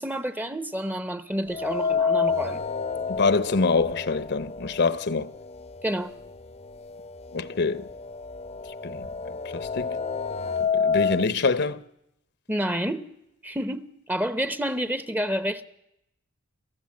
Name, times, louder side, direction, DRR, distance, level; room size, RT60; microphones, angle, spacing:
voice 1, 0.0-2.6 5.8-6.1 12.5-13.1 13.4-15.6, equal, 10° right, 0.8 m, -29 dB
sound 1, 1.5-5.6 5.9-6.0 7.0-7.1 7.5-11.3, left 5 dB, 30° left, 0.7 m, -28 dB
voice 2, 3.1-5.3 7.3-7.9 8.8-10.0 10.7-11.8, left 4 dB, 55° left, 0.9 m, -25 dB
26.5 x 14.5 x 7.7 m
head